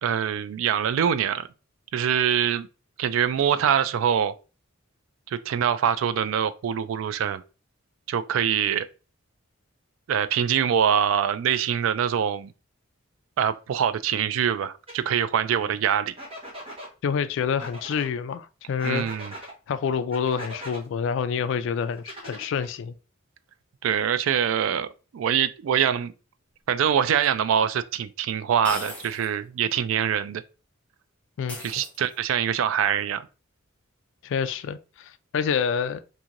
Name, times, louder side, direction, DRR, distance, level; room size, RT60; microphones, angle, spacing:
voice 1, 0.0-1.5 1.9-2.7 3.0-4.3 5.3-7.4 8.1-8.9 10.1-12.5 13.4-16.1 18.8-19.3 23.8-24.9 25.1-26.1 26.7-30.4 31.6-33.2, right 8 dB, 70° right, 0.3 m, -24 dB
sound 1, 14.9-15.0 16.2-16.9 17.6-18.1 18.8-19.5 20.1-20.8 22.0-22.8, equal, 30° right, 0.9 m, -40 dB
voice 2, 17.0-19.1 19.7-23.0 31.4-31.7 34.2-36.0, left 6 dB, 65° left, 0.3 m, -27 dB
sound 2, 27.2-27.3 28.6-29.4 29.7-29.8 31.5-32.4, left 1 dB, 5° left, 0.6 m, -39 dB
2.9 x 2.7 x 2.4 m
head